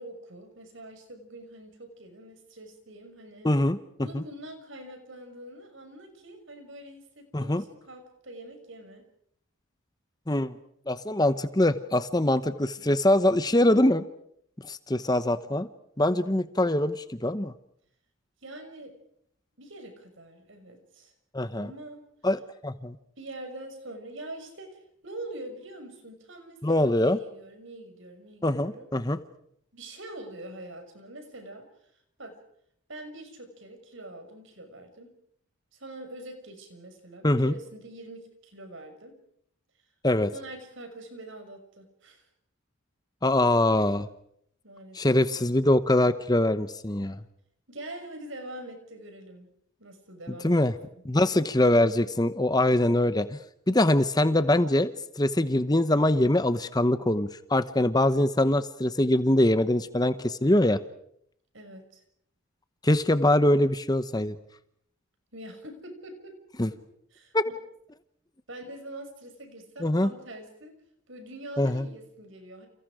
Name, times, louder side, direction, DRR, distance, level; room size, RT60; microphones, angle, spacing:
voice 1, 0.0-3.5 4.0-9.1 12.8-12.9 18.4-18.9 19.6-21.1 21.6-22.0 23.2-28.9 29.7-31.7 32.2-32.4 32.9-35.1 35.7-39.1 40.3-42.2 44.6-45.2 47.7-49.5 49.8-50.6 50.9-51.0 61.5-62.0 65.3-66.4 66.7-66.8 67.1-67.3 68.5-70.8 71.1-72.7, right 1 dB, 60° right, 7 dB, 6.1 m, -44 dB
voice 2, 3.4-3.8 4.1-4.2 7.3-7.6 10.3-10.5 10.9-14.0 14.6-15.7 16.0-17.5 21.3-21.7 22.2-23.0 26.6-27.2 28.4-29.2 37.2-37.5 40.0-40.3 43.2-44.1 44.9-47.2 50.4-50.7 51.0-53.4 53.7-54.9 55.2-60.8 62.8-64.4 66.6-66.7 67.3-67.4 69.8-70.1 71.6-71.9, left 1 dB, 20° left, 12 dB, 0.9 m, -23 dB
29.5 x 29.5 x 5.0 m, 0.69 s
head